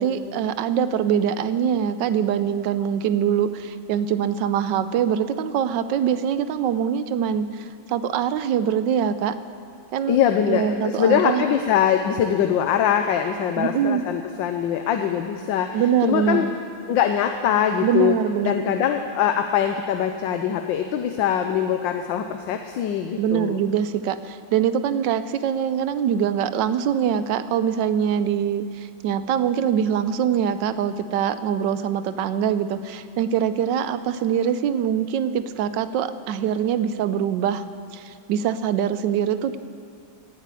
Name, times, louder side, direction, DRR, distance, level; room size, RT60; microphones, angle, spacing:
voice 1, 0.0-9.4 9.9-10.2 10.5-11.5 13.6-14.1 15.7-16.5 17.8-18.7 23.2-37.6 37.9-39.6, right 8 dB, 80° right, 12 dB, 1.3 m, -23 dB
voice 2, 10.1-16.5 16.9-18.2 18.4-23.6, left 9 dB, 85° left, 6 dB, 1.4 m, -22 dB
18.0 x 8.4 x 8.3 m, 2.3 s
omnidirectional pair, 2.0 m